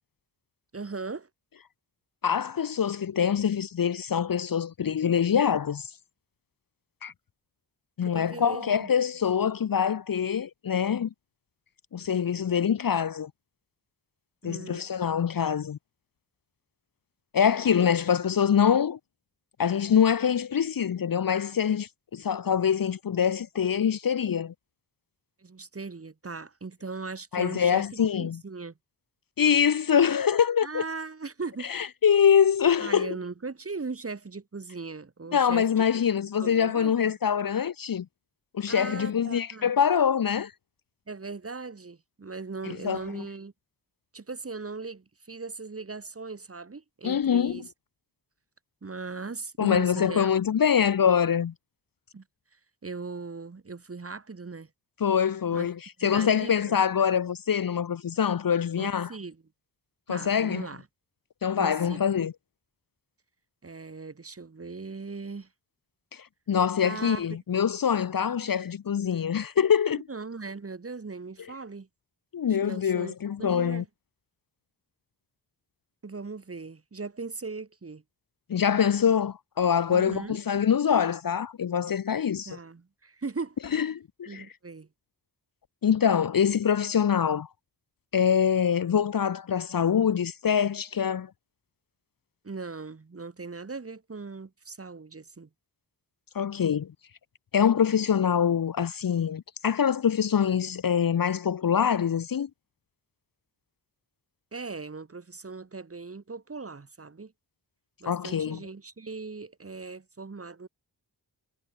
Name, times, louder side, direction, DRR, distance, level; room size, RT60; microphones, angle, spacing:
voice 1, 0.7-1.3 8.0-8.9 14.4-14.9 25.4-28.7 30.6-31.7 32.8-35.7 36.4-37.1 38.7-39.7 41.1-43.5 44.1-47.6 48.8-50.3 52.1-52.2 52.5-54.7 55.5-55.8 56.0-56.8 58.8-59.4 60.1-60.9 61.6-62.3 63.6-65.5 66.8-67.2 70.1-71.9 72.6-73.9 76.0-78.0 79.9-80.4 82.5-83.6 84.3-84.9 92.4-95.5 104.5-107.3 108.0-110.7, right 4 dB, 30° right, 1.1 m, -39 dB
voice 2, 2.2-5.9 7.0-7.1 8.0-11.1 11.9-13.3 14.4-15.8 17.3-19.0 19.6-24.5 27.3-28.4 29.4-30.8 31.7-33.2 35.3-38.1 38.5-40.5 42.7-43.2 47.0-47.6 49.6-51.5 55.0-59.1 60.1-60.7 61.4-62.3 66.1-70.0 72.3-73.8 78.5-82.6 83.7-84.4 85.8-87.5 88.1-91.3 96.3-96.9 97.5-102.5 108.0-108.6, left 8 dB, 55° left, 0.6 m, -24 dB
wide cardioid pair, 60°, 43 cm